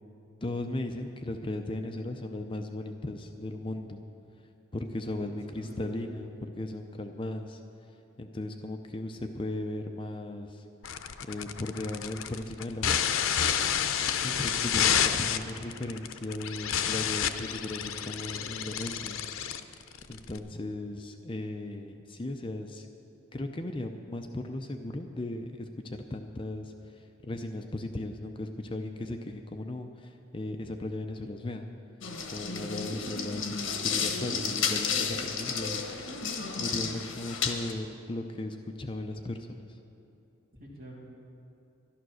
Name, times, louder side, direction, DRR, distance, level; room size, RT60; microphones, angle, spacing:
voice 1, 0.4-4.0 4.7-6.3 6.6-7.6 8.2-10.6 11.2-13.0 14.2-19.2 20.1-22.9 23.3-31.7 32.3-35.8 36.6-39.7, left 1 dB, 25° left, 5 dB, 0.5 m, -37 dB
voice 2, 5.1-6.1 13.7-14.2 40.6-41.2, right 1 dB, 45° right, -5 dB, 3.2 m, -48 dB
sound 1, 10.8-20.4, left 8 dB, 90° left, 0.6 m, -29 dB
sound 2, 32.0-37.7, left 6 dB, 70° left, 1.2 m, -32 dB
12.0 x 12.0 x 6.3 m, 2.9 s
head